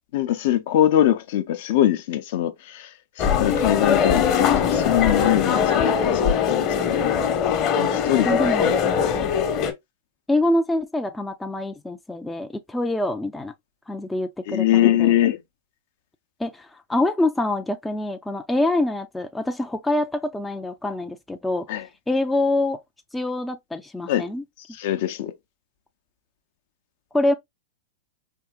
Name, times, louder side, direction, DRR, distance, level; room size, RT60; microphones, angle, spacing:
voice 1, 0.1-2.9 3.2-7.1 7.8-8.3 8.6-8.8 14.5-15.4 21.7-21.8 24.1-24.3 24.8-25.3, left 12 dB, 60° left, 0.6 m, -22 dB
sound 1, 3.2-9.7, left 7 dB, 40° left, 1.0 m, -21 dB
voice 2, 8.2-8.7 10.3-13.5 13.9-15.1 16.4-21.7 22.1-22.8 23.1-24.4 27.1-27.3, left 1 dB, 5° left, 0.4 m, -25 dB
4.4 x 2.8 x 2.2 m
hypercardioid pair, 125°, 0 cm